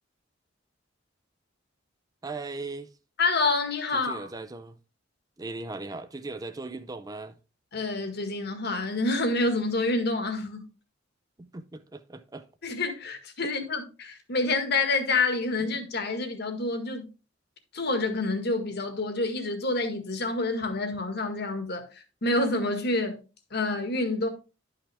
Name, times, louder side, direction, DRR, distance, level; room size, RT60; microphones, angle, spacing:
voice 1, 2.2-2.9 4.0-4.8 5.4-7.3 11.4-12.5, right 3 dB, 20° right, 0.5 m, -38 dB
voice 2, 3.2-4.3 7.7-10.7 12.6-17.0 17.7-23.2 23.5-24.3, left 3 dB, 60° left, 1.7 m, -28 dB
11.0 x 5.7 x 3.4 m
head